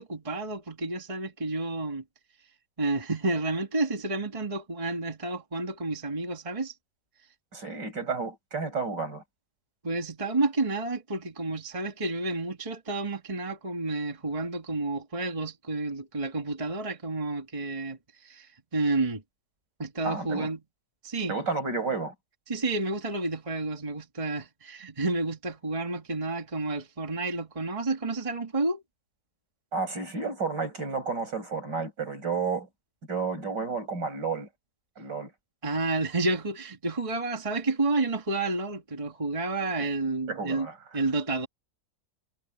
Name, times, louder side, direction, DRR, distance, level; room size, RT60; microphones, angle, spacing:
voice 1, 0.0-2.0 2.8-6.7 9.8-18.0 18.2-19.2 19.8-20.6 21.0-21.4 22.5-28.8 35.6-40.7 40.9-41.5, right 2 dB, 20° right, 1.8 m, -30 dB
voice 2, 7.5-9.2 20.0-20.5 21.3-22.1 29.7-32.7 33.1-34.5 35.0-35.3 39.8-39.9 40.3-41.0, right 4 dB, 75° right, 7.4 m, -31 dB
omnidirectional pair, 1.9 m